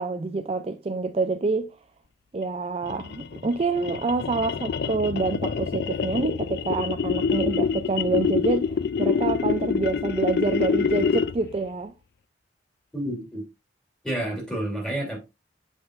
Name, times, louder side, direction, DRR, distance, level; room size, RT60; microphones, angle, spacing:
voice 1, 0.0-1.7 2.3-11.9, right 3 dB, 35° right, 0.4 m, -27 dB
sound 1, 2.8-11.5, left 6 dB, 60° left, 0.4 m, -26 dB
voice 2, 12.9-13.4 14.0-15.2, right 1 dB, 5° left, 3.1 m, -29 dB
8.0 x 5.3 x 2.5 m
head